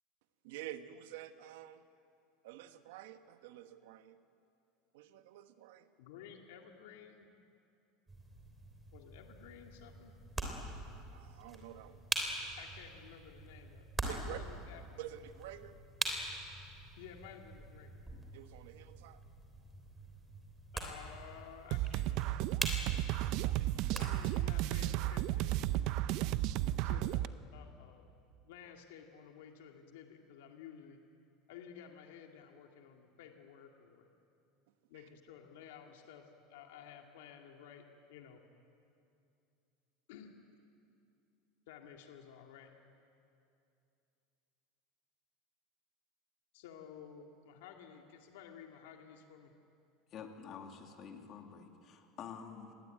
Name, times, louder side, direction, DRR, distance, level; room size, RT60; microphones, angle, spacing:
voice 1, 0.4-1.8 2.4-4.2 4.9-5.9 11.1-12.1 14.0-14.4 15.0-15.7 18.3-19.2 22.8-24.1 34.9-35.0, right 13 dB, 75° right, 9 dB, 1.4 m, -49 dB
voice 2, 6.0-7.3 8.9-10.1 12.6-13.9 14.1-15.0 17.0-17.9 20.7-22.5 24.0-25.7 26.8-28.1 28.4-31.0 31.5-34.1 34.9-37.8 38.1-38.4 40.1-40.6 41.7-42.7 46.5-49.5, left 8 dB, 80° left, 3 dB, 2.3 m, -53 dB
sound 1, 8.1-24.5, right 2 dB, 10° right, 3.3 m, -43 dB
sound 2, 21.7-27.3, right 14 dB, 45° right, 0.6 m, -33 dB
voice 3, 50.1-52.7, left 7 dB, 30° left, 4 dB, 2.6 m, -48 dB
28.0 x 21.5 x 9.1 m, 2.6 s
supercardioid pair, 170°, 0 cm